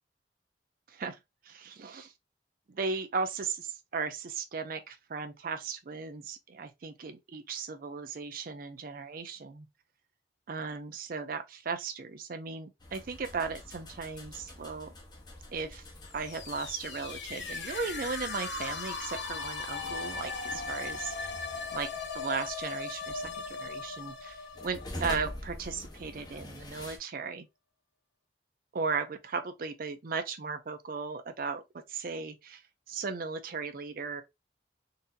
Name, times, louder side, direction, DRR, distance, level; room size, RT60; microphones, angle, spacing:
voice 1, 0.9-1.2 1.5-2.1 2.7-9.7 10.5-14.9 15.5-15.8 16.1-21.3 21.7-21.9 22.1-24.4 24.6-27.5 28.7-31.6 31.9-32.6 32.9-34.2, right 5 dB, 55° right, 0.5 m, -36 dB
sound 1, 12.8-27.0, left 1 dB, 25° left, 0.8 m, -46 dB
sound 2, 16.0-25.8, left 4 dB, 70° left, 0.6 m, -38 dB
4.0 x 2.6 x 2.5 m
head